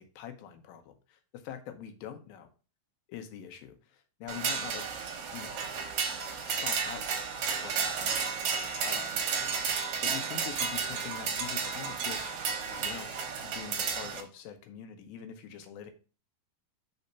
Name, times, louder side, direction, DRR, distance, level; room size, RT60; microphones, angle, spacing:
voice 1, 0.0-2.5 3.1-4.9 5.3-5.6 6.5-7.1 7.6-8.4 8.8-9.2 10.0-12.3 12.7-13.2 13.4-15.9, left 9 dB, 90° left, 7 dB, 2.7 m, -44 dB
sound 1, 4.3-14.2, right 6 dB, 70° right, 1.5 m, -32 dB
5.5 x 4.0 x 5.5 m, 0.35 s
omnidirectional pair, 4.1 m